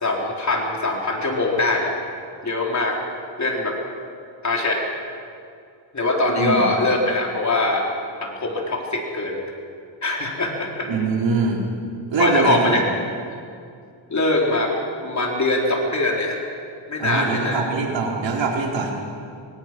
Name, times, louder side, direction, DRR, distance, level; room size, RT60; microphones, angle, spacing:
voice 1, 0.0-1.9 2.4-3.0 3.4-3.8 4.4-4.8 5.9-7.9 8.2-9.4 10.0-10.9 12.2-12.8 14.1-14.7 15.0-16.4 16.9-17.6, left 2 dB, 35° left, -1 dB, 4.1 m, -22 dB
voice 2, 10.9-11.6 12.1-12.8 17.0-18.9, right 4 dB, 65° right, -1 dB, 4.2 m, -23 dB
24.5 x 24.0 x 6.1 m, 2.4 s
cardioid pair, 115°, 47 cm